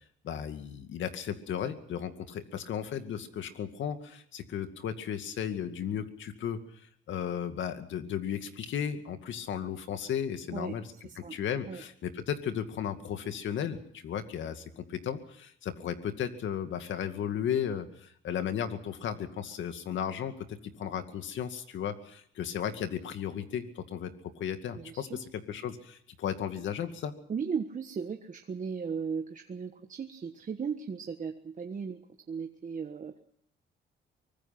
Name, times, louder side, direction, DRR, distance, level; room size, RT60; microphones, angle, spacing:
voice 1, 0.2-10.9 11.2-27.1, left 8 dB, 75° left, 8 dB, 2.3 m, -35 dB
voice 2, 11.0-11.4 11.7-11.8 24.7-25.2 27.3-32.0 32.3-33.2, right 6 dB, 40° right, 5 dB, 1.4 m, -36 dB
24.0 x 20.0 x 5.9 m, 0.66 s
cardioid pair, 90°, 20 cm